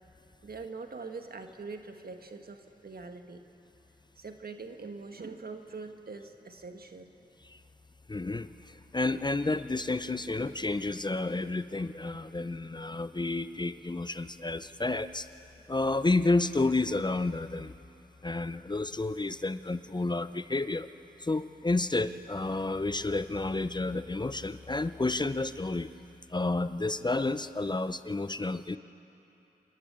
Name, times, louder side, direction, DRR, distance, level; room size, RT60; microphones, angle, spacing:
voice 1, 0.4-3.4 4.2-7.1, right 4 dB, 60° right, 6 dB, 1.6 m, -43 dB
voice 2, 8.1-15.3 15.7-17.7 18.2-20.9 21.2-25.9 26.3-28.8, left 2 dB, 25° left, 13 dB, 0.6 m, -30 dB
26.5 x 12.0 x 8.8 m, 3.0 s
cardioid pair, 40°, 18 cm